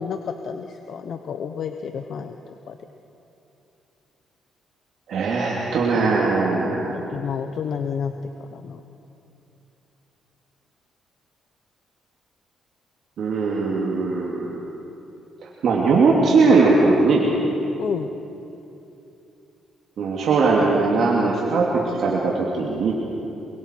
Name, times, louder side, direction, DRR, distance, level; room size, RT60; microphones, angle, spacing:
voice 1, 0.0-2.8 6.9-8.1 8.5-8.8 17.8-18.1, left 7 dB, 65° left, 6 dB, 0.9 m, -30 dB
voice 2, 5.1-7.0 13.2-14.6 15.4-17.3 20.0-22.9, right 3 dB, 65° right, -3 dB, 2.6 m, -20 dB
27.0 x 23.0 x 4.6 m, 2.9 s
cardioid pair, 90°, 0 cm